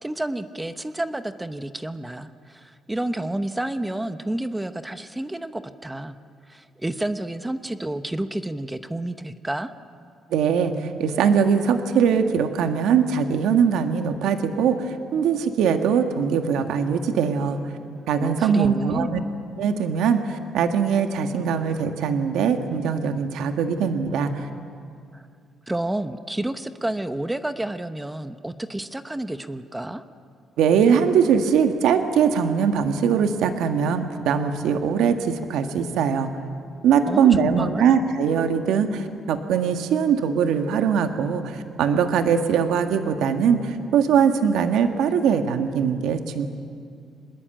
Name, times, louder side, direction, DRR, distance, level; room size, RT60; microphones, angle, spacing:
voice 1, 0.0-6.2 6.5-9.7 18.2-19.2 25.1-25.2 25.7-30.0 37.1-38.0, right 1 dB, 10° right, 10 dB, 0.9 m, -30 dB
voice 2, 10.3-17.6 18.1-19.2 19.6-24.5 30.6-36.3 36.8-46.5, right 7 dB, 85° right, 7 dB, 1.6 m, -21 dB
25.0 x 20.5 x 8.9 m, 2.3 s
cardioid pair, 125°, 0 cm